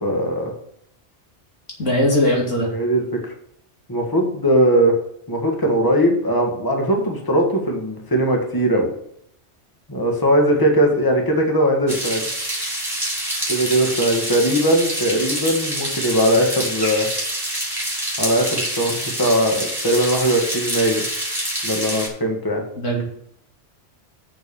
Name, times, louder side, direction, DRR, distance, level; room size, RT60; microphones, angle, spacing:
voice 1, 0.0-0.5 2.7-3.0 3.9-4.9 5.3-8.9 9.9-12.2 13.5-17.1 18.2-21.0 21.6-22.6, right 1 dB, 15° left, 1 dB, 1.7 m, -19 dB
voice 2, 1.8-2.7 22.8-23.0, equal, 85° left, -2 dB, 2.8 m, -19 dB
sound 1, 11.9-22.1, right 1 dB, 20° right, 2.9 m, -26 dB
6.6 x 6.1 x 7.0 m, 0.70 s
omnidirectional pair, 1.3 m